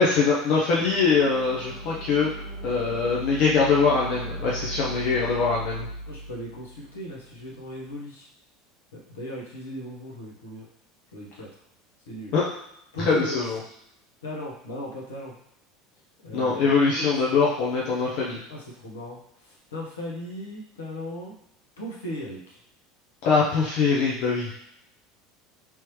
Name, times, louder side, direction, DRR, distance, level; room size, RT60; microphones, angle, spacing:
voice 1, 0.0-2.3 2.6-5.9 12.3-12.4 13.0-13.6 16.3-18.4 23.2-24.5, left 4 dB, 55° left, -5 dB, 0.7 m, -22 dB
sound 1, 0.7-7.8, right 1 dB, 40° right, 0.9 m, -37 dB
voice 2, 6.1-8.3 8.9-10.7 11.1-11.5 12.1-12.4 12.9-13.4 14.2-15.3 16.2-17.1 18.5-19.2 19.4-21.3 21.8-22.6, equal, 75° left, -4 dB, 1.1 m, -37 dB
3.6 x 2.9 x 3.1 m, 0.76 s
figure-of-eight pair, 70°, 0 cm